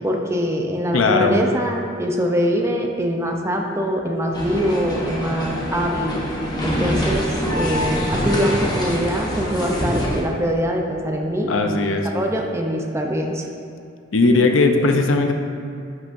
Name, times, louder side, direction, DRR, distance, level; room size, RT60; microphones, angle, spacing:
voice 1, 0.0-6.2 6.6-13.5, equal, 15° right, 1 dB, 0.6 m, -23 dB
voice 2, 0.9-1.4 11.5-12.1 14.1-15.3, left 3 dB, 85° left, 4 dB, 0.7 m, -17 dB
sound 1, 4.3-10.2, equal, 20° left, 1.1 m, -24 dB
11.0 x 5.9 x 2.6 m, 2.4 s
head